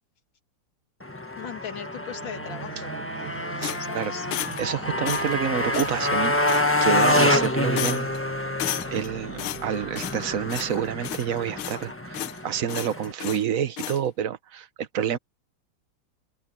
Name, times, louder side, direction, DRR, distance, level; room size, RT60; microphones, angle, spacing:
Motorcycle, 1.0-13.1, left 1 dB, 10° left, 0.9 m, -27 dB
voice 1, 1.4-4.3, left 8 dB, 60° left, 3.0 m, -39 dB
sound 1, 2.0-12.6, right 9 dB, 65° right, 2.0 m, -44 dB
sound 2, 3.6-4.7 5.1-5.4 5.7-6.0 6.5-6.9 7.1-7.5 7.8-8.2 8.6-9.1 9.4-10.2 10.5-10.8 11.0-11.9 12.1-12.4 12.7-13.4 13.8-14.0, left 12 dB, 75° left, 1.6 m, -33 dB
voice 2, 3.6-4.1 4.6-8.2 8.9-15.2, right 8 dB, 50° right, 1.2 m, -28 dB
open air
omnidirectional pair, 2.4 m